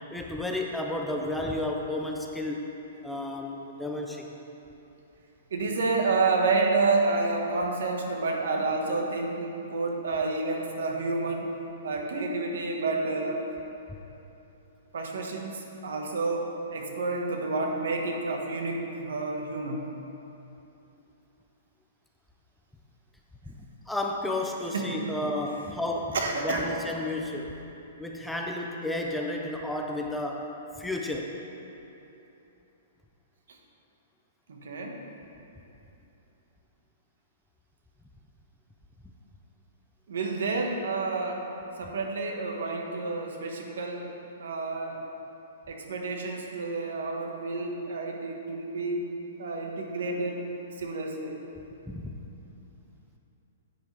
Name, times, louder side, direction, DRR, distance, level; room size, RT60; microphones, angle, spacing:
voice 1, 0.1-2.7 3.0-4.3 23.5-23.6 23.9-26.2 26.4-27.5 28.0-31.4 51.9-52.2, left 1 dB, ahead, 0 dB, 0.4 m, -32 dB
voice 2, 5.5-11.6 11.8-13.5 14.9-19.9 24.7-25.1 26.1-26.6 34.5-35.0 40.1-41.5 41.8-44.1 44.4-45.0 45.7-49.1 49.4-50.5 50.8-51.4, right 3 dB, 75° right, 1 dB, 1.4 m, -29 dB
10.5 x 9.1 x 3.3 m, 2.9 s
hypercardioid pair, 170°, 0 cm